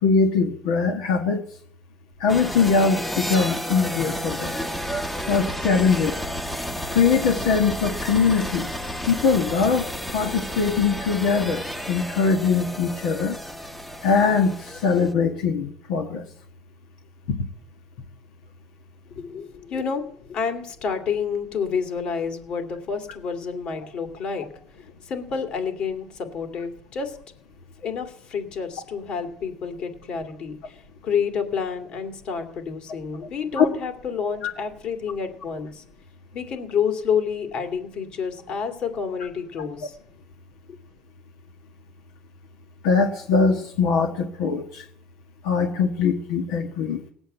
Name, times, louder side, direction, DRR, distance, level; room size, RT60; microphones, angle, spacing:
voice 1, 0.0-1.4 2.2-4.5 5.3-6.2 6.9-8.7 9.1-9.9 10.1-13.4 14.0-16.2 33.6-33.7 42.8-44.8 45.4-47.0, left 5 dB, 85° left, 2 dB, 1.5 m, -21 dB
sound 1, 2.3-15.1, equal, 5° left, 0.9 m, -31 dB
voice 2, 19.1-24.5 24.8-27.2 27.8-35.8 36.3-40.0 40.7-40.8, left 6 dB, 55° left, 5 dB, 2.5 m, -29 dB
18.0 x 8.0 x 7.9 m, 0.65 s
supercardioid pair, 105°, 2 cm